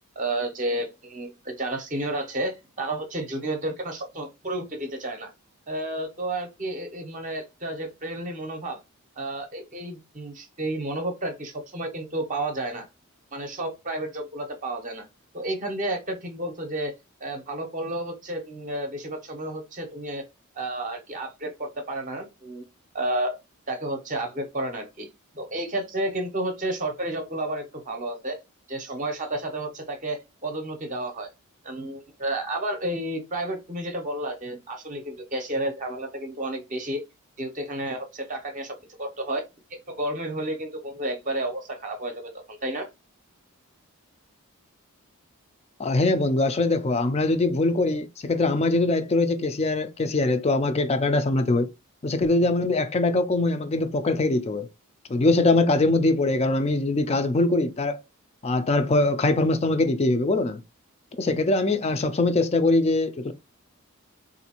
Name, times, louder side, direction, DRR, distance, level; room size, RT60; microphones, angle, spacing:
voice 1, 0.2-5.3 5.7-8.8 9.2-12.9 13.3-15.0 15.3-16.9 17.2-20.2 20.5-22.6 22.9-23.4 23.7-25.1 25.3-28.4 28.7-31.3 31.6-37.0 37.4-39.4 39.7-42.9, right 1 dB, 35° right, 0.7 m, -31 dB
voice 2, 45.8-51.7 52.0-54.7 55.1-58.0 58.4-60.6 61.2-63.3, left 2 dB, 30° left, 0.4 m, -22 dB
3.8 x 2.6 x 2.8 m
head